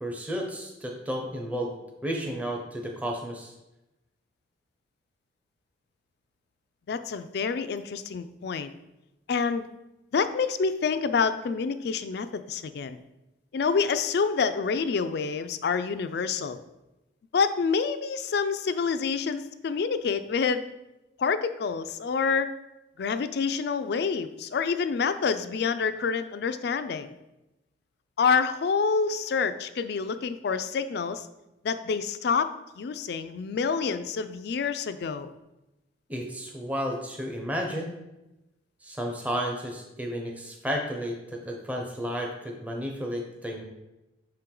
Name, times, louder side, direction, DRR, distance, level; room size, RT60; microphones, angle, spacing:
voice 1, 0.0-1.7 2.0-3.5 36.1-38.0 38.8-43.6, equal, 10° right, 1 dB, 0.6 m, -32 dB
voice 2, 6.9-8.7 9.3-9.7 10.1-13.0 13.5-16.6 17.3-20.6 21.2-22.5 23.0-27.1 28.2-31.3 31.6-35.3, left 5 dB, 60° left, 11 dB, 0.4 m, -27 dB
5.9 x 4.5 x 3.8 m, 0.95 s
head